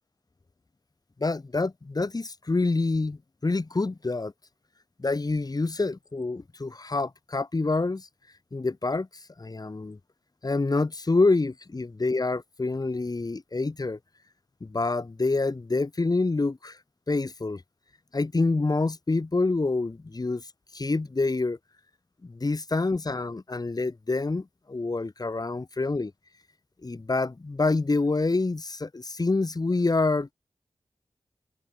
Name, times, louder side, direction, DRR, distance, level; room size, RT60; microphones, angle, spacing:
voice 1, 1.2-4.3 5.0-8.1 8.5-9.1 9.4-10.0 10.4-14.0 14.6-16.8 17.1-17.6 18.1-20.4 20.7-21.6 22.2-26.1 26.8-30.3, left 3 dB, 45° left, 6.1 m, -27 dB
cardioid pair, 40°, 9 cm